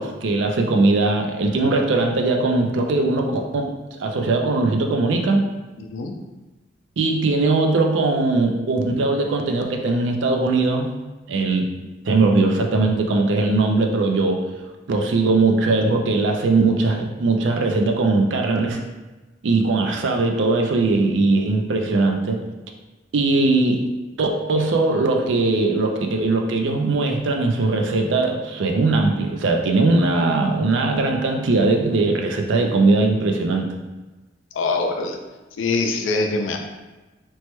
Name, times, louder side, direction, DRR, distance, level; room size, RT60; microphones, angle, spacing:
voice 1, 0.0-5.5 7.0-10.9 11.3-11.7 12.1-14.4 14.9-18.8 19.4-22.4 23.1-23.9 24.2-33.7, right 3 dB, 70° right, 3 dB, 0.4 m, -20 dB
voice 2, 5.8-6.1 34.5-35.2 35.6-36.6, left 3 dB, 80° left, 3 dB, 0.4 m, -23 dB
3.0 x 2.1 x 3.0 m, 1.2 s
head